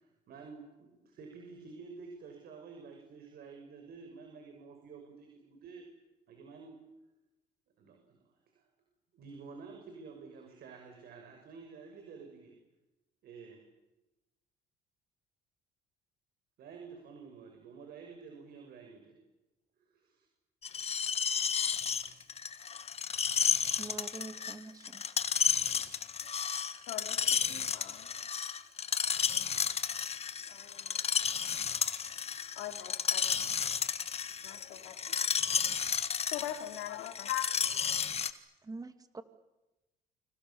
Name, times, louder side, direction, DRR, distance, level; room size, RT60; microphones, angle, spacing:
voice 1, 0.0-5.9 6.3-6.8 7.8-8.7 9.1-12.6 13.2-13.7 16.6-19.2 19.8-20.3, right 5 dB, 65° right, 3 dB, 6.4 m, -50 dB
Screech, 20.6-38.3, left 7 dB, 35° left, 1.6 m, -32 dB
voice 2, 23.8-25.0 38.6-39.2, right 3 dB, 20° right, 9 dB, 2.6 m, -44 dB
voice 3, 26.9-28.2 30.5-31.4 32.2-33.3 34.4-35.6 36.3-37.5, left 13 dB, 90° left, 6 dB, 3.7 m, -42 dB
29.0 x 26.5 x 7.2 m, 0.98 s
cardioid pair, 110°, 17 cm